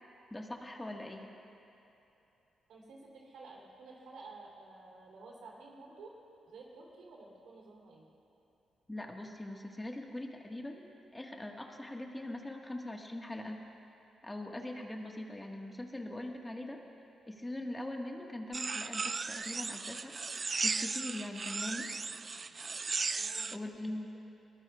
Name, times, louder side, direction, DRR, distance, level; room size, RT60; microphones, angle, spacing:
voice 1, 0.3-1.3 8.9-13.6 14.2-16.8 17.3-20.2 20.5-21.9 23.5-24.1, left 1 dB, 15° left, 1 dB, 1.6 m, -42 dB
voice 2, 2.7-6.1 6.5-8.1 23.1-23.5, right 3 dB, 75° right, -3 dB, 3.3 m, -52 dB
sound 1, 18.5-23.6, right 4 dB, 40° right, 0.4 m, -36 dB
23.0 x 19.0 x 2.4 m, 3.0 s
supercardioid pair, 50°, 0 cm